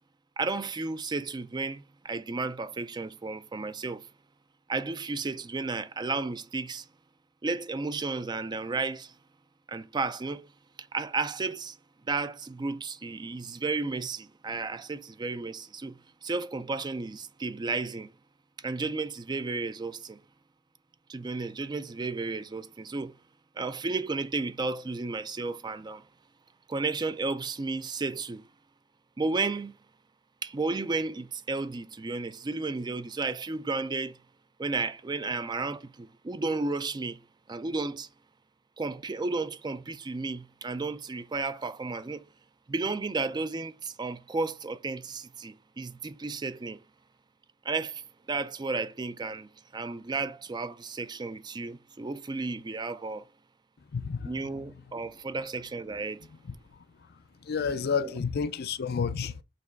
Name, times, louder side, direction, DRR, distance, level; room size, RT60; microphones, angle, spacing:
voice 1, 0.4-4.1 4.7-6.9 7.4-9.1 9.7-10.5 10.8-11.8 12.1-18.1 18.6-20.2 21.1-23.1 23.6-26.1 26.7-28.4 29.2-29.8 30.4-34.2 34.6-37.2 37.5-38.1 38.8-42.2 42.7-46.8 47.6-53.3 54.2-56.3 57.9-58.2, right 3 dB, 20° right, 0.4 m, -33 dB
voice 2, 53.9-54.7 56.5-56.6 57.4-59.4, left 5 dB, 55° left, 0.5 m, -31 dB
6.9 x 3.0 x 4.6 m
head